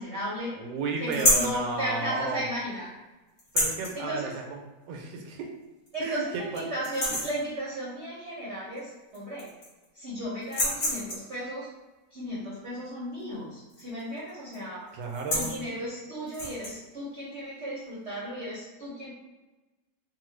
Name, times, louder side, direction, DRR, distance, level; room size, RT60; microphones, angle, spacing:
voice 1, 0.0-0.5 1.0-2.9 3.9-4.3 5.9-9.5 9.9-11.7 12.1-14.9 15.3-19.1, equal, 50° right, -7 dB, 0.8 m, -35 dB
voice 2, 0.6-2.4 3.5-4.6 4.9-5.5 6.0-6.6 14.9-15.5, right 4 dB, 85° right, 2 dB, 1.2 m, -33 dB
sound 1, 1.1-1.6 3.4-3.9 5.3-5.4 5.9-6.0 6.3-6.6 6.8-7.4 8.8-8.9 9.1-9.8 10.4-11.3 13.7-14.0 14.3-14.6 15.0-15.6 16.3-16.7, left 1 dB, 55° left, 0.5 m, -27 dB
3.0 x 2.2 x 3.1 m, 1.1 s
omnidirectional pair, 1.9 m